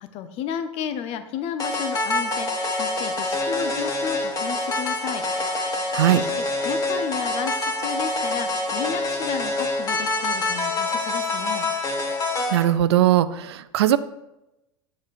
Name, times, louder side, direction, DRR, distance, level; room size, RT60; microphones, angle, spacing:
voice 1, 0.0-5.4 6.1-6.3 6.6-11.7, left 8 dB, 45° left, 10 dB, 0.7 m, -33 dB
sound 1, 1.6-12.6, left 2 dB, 25° left, 1.6 m, -26 dB
voice 2, 12.5-14.0, right 12 dB, 70° right, 14 dB, 0.4 m, -19 dB
7.2 x 7.2 x 2.6 m, 0.93 s
hypercardioid pair, 85°, 14 cm